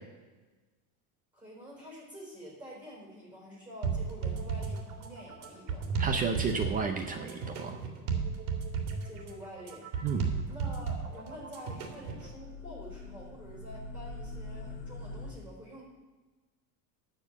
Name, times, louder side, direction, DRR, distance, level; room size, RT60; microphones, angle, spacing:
voice 1, 1.3-5.9 9.0-9.9 10.4-15.8, equal, 5° right, -2 dB, 4.0 m, -47 dB
sound 1, 3.8-12.3, right 5 dB, 80° right, 2.3 m, -34 dB
voice 2, 6.0-7.8 10.0-10.3, right 5 dB, 20° right, 5 dB, 0.5 m, -32 dB
sound 2, 11.9-15.3, left 2 dB, 30° left, 2.3 m, -43 dB
13.0 x 4.4 x 8.1 m, 1.3 s
supercardioid pair, 155°, 44 cm